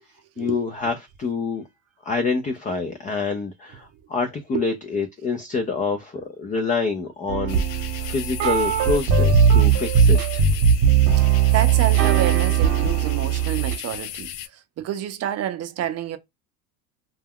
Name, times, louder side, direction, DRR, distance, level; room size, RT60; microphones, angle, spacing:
voice 1, 0.4-1.6 2.0-10.4, left 4 dB, 20° left, 0.4 m, -27 dB
sound 1, 7.3-13.8, right 7 dB, 55° right, 0.9 m, -19 dB
sound 2, 7.5-14.5, left 11 dB, 75° left, 0.5 m, -36 dB
voice 2, 10.9-16.2, right 11 dB, 40° right, 0.5 m, -29 dB
2.3 x 2.2 x 3.4 m
supercardioid pair, 105°, 42 cm